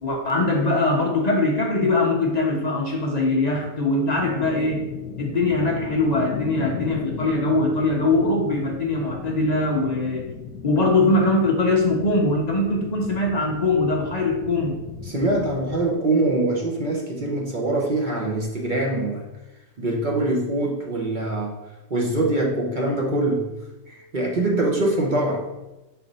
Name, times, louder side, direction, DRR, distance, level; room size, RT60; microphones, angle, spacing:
voice 1, 0.0-4.8 5.2-10.3 10.6-14.8, left 2 dB, 45° left, 0 dB, 0.5 m, -22 dB
sound 1, 4.1-15.8, left 6 dB, 80° left, 1.1 m, -36 dB
voice 2, 15.1-19.2 19.8-21.6 21.9-23.5 23.9-25.5, right 2 dB, 40° right, -1 dB, 0.7 m, -23 dB
4.5 x 4.0 x 5.3 m, 1.0 s
omnidirectional pair, 1.7 m